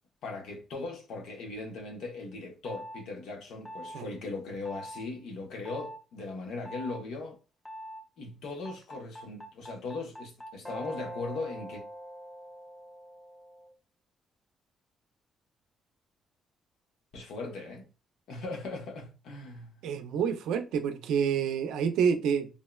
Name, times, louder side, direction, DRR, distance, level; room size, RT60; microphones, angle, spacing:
voice 1, 0.2-7.4 8.2-11.8 17.1-17.9 18.3-19.7, left 3 dB, 80° left, 0.8 m, -39 dB
sound 1, 2.7-3.0 3.7-4.0 4.7-5.0 5.7-6.0 6.7-7.0 7.7-8.0 8.7-13.7, equal, 10° left, 0.6 m, -43 dB
voice 2, 19.8-22.5, right 7 dB, 85° right, 0.4 m, -28 dB
3.6 x 2.0 x 2.2 m
cardioid pair, 90°, 0 cm